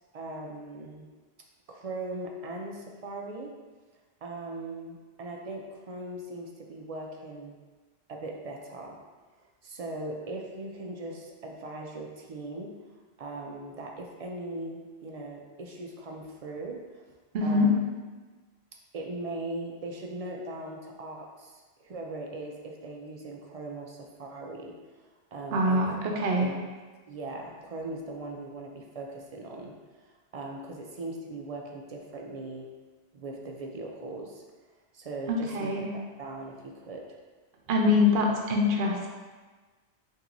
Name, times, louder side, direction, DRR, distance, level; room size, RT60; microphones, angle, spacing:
voice 1, 0.1-1.1 1.7-3.5 4.2-7.6 8.1-9.0 9.6-12.7 13.2-17.0 17.4-17.8 18.9-25.1 25.3-26.0 26.4-26.7 27.1-29.7 30.3-32.7 33.1-34.4 34.9-35.8 36.2-37.0, right 2 dB, 55° right, 0 dB, 0.4 m, -39 dB
voice 2, 17.3-17.7 25.5-26.5 35.3-35.9 37.7-39.1, left 2 dB, 70° right, 0 dB, 0.8 m, -24 dB
5.7 x 2.7 x 2.6 m, 1.3 s
omnidirectional pair, 1.1 m